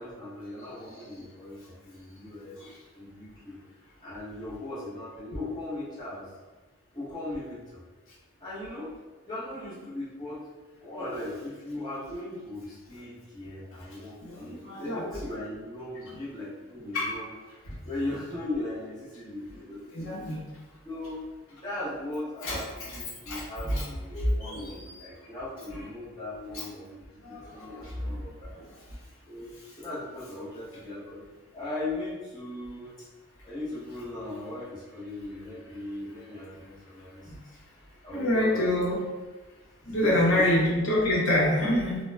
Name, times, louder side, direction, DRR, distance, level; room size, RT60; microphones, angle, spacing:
voice 1, 0.0-2.6 2.9-3.6 4.0-6.3 6.9-7.8 8.4-8.9 9.2-10.5 10.8-17.3 17.8-20.3 20.8-28.5 29.2-31.2 31.5-33.1 33.4-37.3 38.0-38.7 40.0-40.6, left 2 dB, 20° left, -10 dB, 0.7 m, -38 dB
voice 2, 14.2-15.0 16.9-17.1 17.7-17.8 19.9-20.4 22.4-22.6 23.3-23.8 24.1-25.0 26.4-26.6 27.2-27.7 38.1-39.0 39.9-42.0, left 1 dB, 75° left, -6 dB, 0.7 m, -26 dB
2.1 x 2.1 x 3.3 m, 1.3 s
head